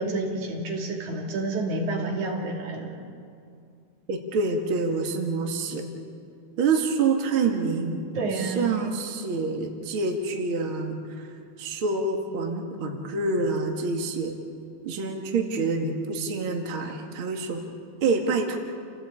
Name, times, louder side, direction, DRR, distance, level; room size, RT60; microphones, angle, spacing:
voice 1, 0.0-3.0 8.1-8.7, right 2 dB, 80° right, 0 dB, 4.1 m, -29 dB
voice 2, 4.1-5.8 6.6-11.3 11.6-14.4 14.8-17.6 18.0-18.6, right 4 dB, 45° right, 2 dB, 2.6 m, -27 dB
29.0 x 16.5 x 8.6 m, 2.4 s
omnidirectional pair, 3.4 m